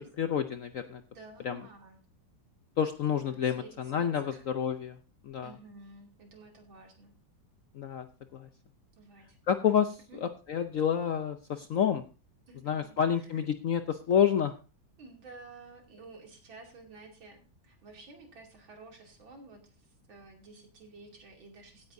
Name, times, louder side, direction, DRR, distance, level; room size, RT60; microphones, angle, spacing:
voice 1, 0.0-1.0 1.4-1.6 2.8-5.0 5.2-5.5 7.7-8.1 8.3-8.5 9.5-12.0 12.6-14.5, left 8 dB, 65° left, 9 dB, 0.8 m, -29 dB
voice 2, 1.1-2.0 3.2-4.5 5.4-7.1 9.0-9.4 10.1-10.2 12.5-13.5 15.0-21.9, right 3 dB, 85° right, 2 dB, 3.4 m, -52 dB
16.0 x 9.7 x 2.6 m, 0.34 s
omnidirectional pair, 2.1 m